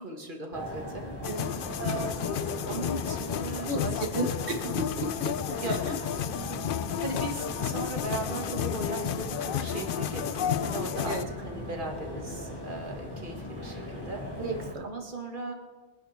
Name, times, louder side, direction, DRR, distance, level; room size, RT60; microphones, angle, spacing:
voice 1, 0.0-4.4 5.6-5.8 6.4-6.5 7.0-14.3 14.8-15.5, right 2 dB, 50° right, 2 dB, 2.1 m, -38 dB
sound 1, 0.5-14.7, left 1 dB, 20° left, 2.1 m, -39 dB
sound 2, 1.2-11.2, left 9 dB, 60° left, 0.6 m, -32 dB
voice 2, 3.7-6.0 11.0-11.3 14.4-14.9, right 1 dB, 70° right, 5 dB, 1.8 m, -34 dB
23.0 x 10.5 x 3.5 m, 1.3 s
omnidirectional pair, 1.1 m